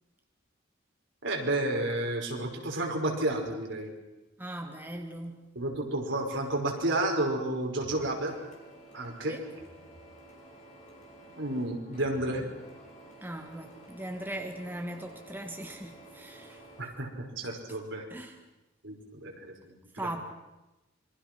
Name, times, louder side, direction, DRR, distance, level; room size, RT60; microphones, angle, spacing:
voice 1, 1.2-3.9 5.6-8.3 8.9-9.3 11.4-12.4 16.8-18.1 18.8-20.1, right 1 dB, 70° right, 1 dB, 5.3 m, -31 dB
voice 2, 4.4-5.4 9.3-9.4 13.2-16.7 17.4-17.8 18.1-18.4 20.0-20.2, right 1 dB, 10° right, 2 dB, 1.9 m, -39 dB
Printer, 7.8-16.8, right 1 dB, 40° left, 6.1 m, -51 dB
27.0 x 24.0 x 6.1 m, 1.0 s
head